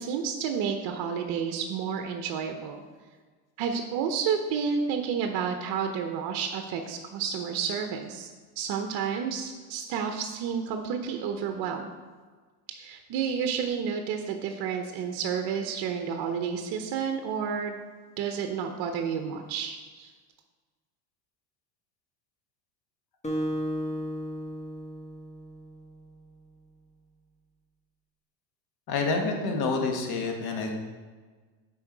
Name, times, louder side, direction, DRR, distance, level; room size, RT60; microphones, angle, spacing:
voice 1, 0.0-2.8 3.6-8.3 8.6-11.9 12.7-17.8 18.2-20.1, right 6 dB, 50° right, 5 dB, 0.8 m, -30 dB
Acoustic guitar, 23.2-26.0, equal, 15° left, 1.3 m, -34 dB
voice 2, 28.9-30.7, left 3 dB, 50° left, 2 dB, 1.6 m, -28 dB
7.0 x 4.7 x 4.6 m, 1.4 s
hypercardioid pair, 95°, 50 cm